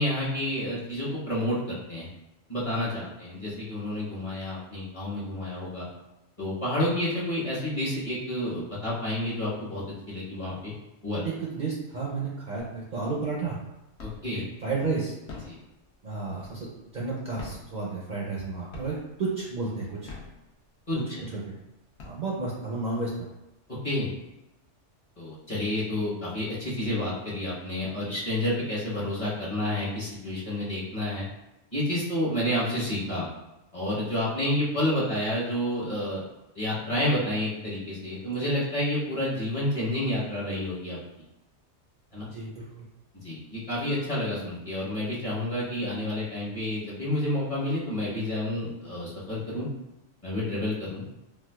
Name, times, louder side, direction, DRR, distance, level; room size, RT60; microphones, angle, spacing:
voice 1, 0.0-2.1 2.5-5.9 6.4-10.7 11.0-11.3 14.0-14.4 15.5-15.6 20.9-21.0 23.8-24.1 25.2-31.3 31.7-33.3 33.7-36.2 36.5-41.0 42.1-42.3 43.2-49.7 50.2-51.0, left 1 dB, 30° left, -8 dB, 0.9 m, -29 dB
voice 2, 11.2-13.6 14.3-15.1 16.0-20.1 20.9-21.6 22.0-23.1 42.2-42.9, right 3 dB, 50° right, -4 dB, 0.6 m, -32 dB
sound 1, 12.6-13.1 13.4-14.4 15.1-16.9 17.3-18.4 18.7-19.3 19.9-20.9 21.4-21.5 21.8-22.7, left 3 dB, 65° left, 0.9 m, -44 dB
4.4 x 2.3 x 2.2 m, 0.95 s
omnidirectional pair, 1.2 m